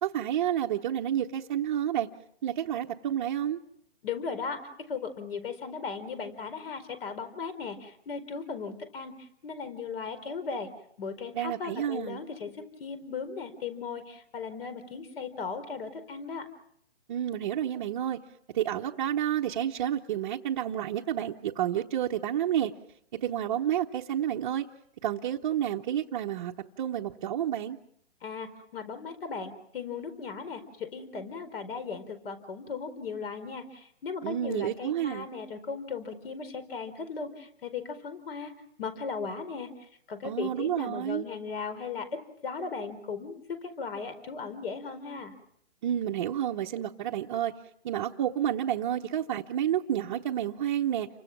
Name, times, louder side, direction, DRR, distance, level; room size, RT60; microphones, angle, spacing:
voice 1, 0.0-2.1 2.4-3.6 11.3-12.2 17.1-18.2 18.5-22.7 23.2-24.7 25.0-26.5 26.8-27.8 34.2-35.3 40.2-41.2 45.8-47.5 47.8-51.1, right 10 dB, 30° right, -3 dB, 0.9 m, -30 dB
voice 2, 4.0-10.7 11.0-16.5 28.2-38.5 38.8-45.3, left 5 dB, 60° left, 11 dB, 4.5 m, -37 dB
30.0 x 24.5 x 6.0 m, 0.70 s
hypercardioid pair, 155°, 33 cm